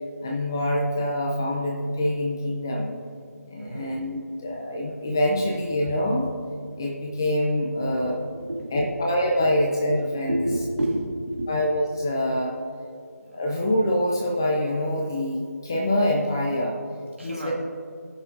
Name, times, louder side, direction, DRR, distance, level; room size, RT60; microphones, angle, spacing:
voice 1, 0.2-2.9 3.5-6.2 6.8-8.2 8.7-10.5 11.5-12.6 13.3-16.8 17.2-17.5, left 1 dB, 15° left, -1 dB, 0.4 m, -25 dB
voice 2, 3.6-4.0 7.9-8.0 8.4-9.1 10.3-11.5 13.3-13.4 17.2-17.5, right 1 dB, 45° right, -3 dB, 2.2 m, -30 dB
18.5 x 6.5 x 2.6 m, 2.4 s
figure-of-eight pair, 165°, 9 cm